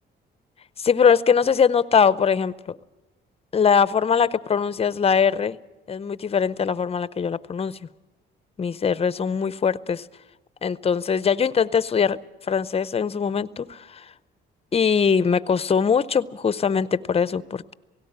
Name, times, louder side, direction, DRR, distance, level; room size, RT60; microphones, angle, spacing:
voice 1, 0.8-2.8 3.5-5.6 5.9-7.8 8.6-10.0 10.6-12.2 12.5-14.0 14.7-17.7, left 6 dB, 30° left, 17 dB, 0.6 m, -21 dB
17.5 x 17.0 x 8.7 m, 1.0 s
cardioid pair, 90°, 20 cm